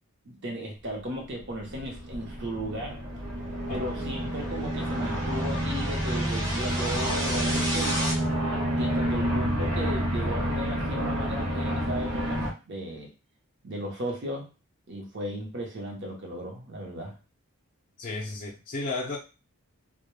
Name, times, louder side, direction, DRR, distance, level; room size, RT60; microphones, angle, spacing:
voice 1, 0.2-3.0 3.7-8.0 8.7-13.1 13.6-14.5 14.9-17.2, equal, 50° right, 0 dB, 0.8 m, -35 dB
sound 1, 1.3-8.1, equal, 15° right, 0.6 m, -36 dB
sound 2, 1.5-12.5, equal, 90° right, 0.9 m, -29 dB
voice 2, 18.0-19.2, left 3 dB, 35° left, -4 dB, 0.4 m, -33 dB
2.2 x 2.1 x 3.1 m, 0.30 s
head